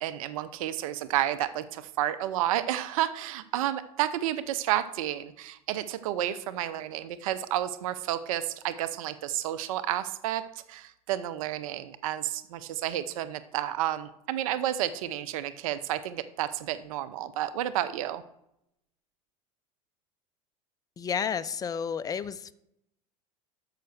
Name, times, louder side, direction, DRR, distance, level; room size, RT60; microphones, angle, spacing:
voice 1, 0.0-10.4 10.7-18.2, right 12 dB, 75° right, 13 dB, 0.6 m, -31 dB
voice 2, 21.0-22.5, left 7 dB, 20° left, 14 dB, 0.4 m, -31 dB
6.5 x 5.7 x 6.5 m, 0.79 s
hypercardioid pair, 90°, 18 cm